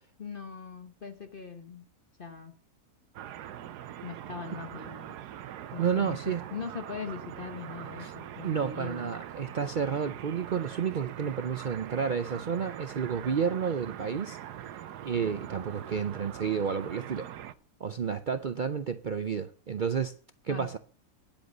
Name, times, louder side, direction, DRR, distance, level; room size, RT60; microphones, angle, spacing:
voice 1, 0.2-1.8 2.2-2.5 4.0-5.1 5.7-9.1 20.5-20.7, left 5 dB, 40° left, 1.0 m, -41 dB
sound 1, 3.1-17.5, right 11 dB, 90° right, 1.3 m, -43 dB
voice 2, 5.8-6.4 8.0-8.1 8.4-14.4 15.0-17.3 17.8-20.2 20.4-20.8, right 7 dB, 75° right, 0.4 m, -31 dB
10.5 x 8.0 x 6.6 m
omnidirectional pair, 1.7 m